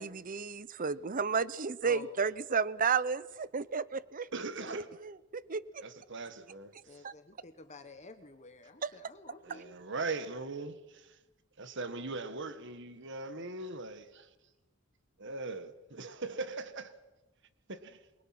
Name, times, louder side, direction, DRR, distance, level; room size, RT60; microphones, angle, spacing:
voice 1, 0.0-4.3 4.7-5.6 7.0-7.1 8.8-8.9, right 5 dB, 40° right, 0.7 m, -32 dB
voice 2, 1.8-2.3 4.6-4.8 6.8-9.8, left 3 dB, 35° left, 1.2 m, -51 dB
voice 3, 4.3-4.9 5.8-6.7 9.4-11.1 11.6-14.3 15.2-16.9 17.7-18.0, right 3 dB, 60° right, 1.7 m, -40 dB
28.0 x 22.5 x 6.0 m
head